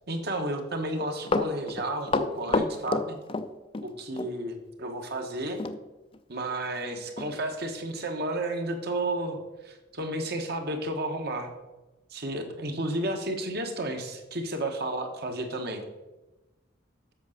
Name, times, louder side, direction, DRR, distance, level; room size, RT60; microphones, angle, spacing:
voice 1, 0.1-3.2 3.8-5.6 6.3-9.4 9.6-11.5 12.1-15.8, right 1 dB, 55° right, 5 dB, 1.3 m, -32 dB
Run, 1.0-3.9 4.2-4.3 5.6-5.8 6.1-6.2 6.7-6.8 7.2-7.3 7.9-8.0, left 3 dB, 30° left, 0.5 m, -28 dB
8.3 x 6.1 x 6.5 m, 1.1 s
head